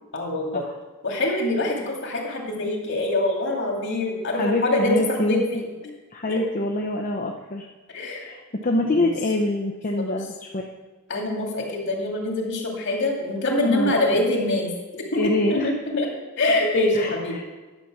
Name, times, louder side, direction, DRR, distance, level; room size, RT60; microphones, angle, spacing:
voice 1, 0.1-0.7 1.0-5.6 6.3-6.4 7.9-8.2 8.9-9.1 10.0-10.2 11.1-16.1 16.4-17.4, left 2 dB, 60° left, 0 dB, 2.3 m, -25 dB
voice 2, 4.4-5.4 5.8-7.7 8.2-10.7 13.6-14.1 15.2-16.0 16.9-17.4, left 1 dB, 40° left, 1 dB, 0.7 m, -25 dB
10.5 x 6.9 x 6.0 m, 1.2 s
head